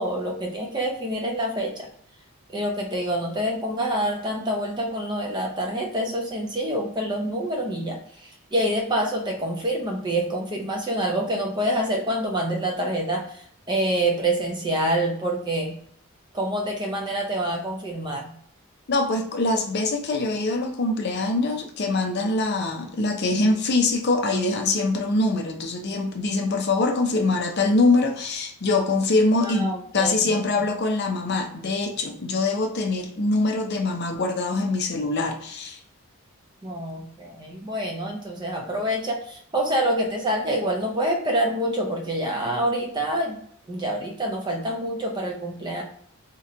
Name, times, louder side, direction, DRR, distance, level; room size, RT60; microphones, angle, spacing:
voice 1, 0.0-1.9 2.5-15.7 16.3-18.3 29.4-30.4 36.6-43.4 43.7-45.8, right 1 dB, 20° right, 0.5 m, -26 dB
voice 2, 18.9-35.8, left 2 dB, 50° left, 0.5 m, -23 dB
2.8 x 2.1 x 3.7 m
head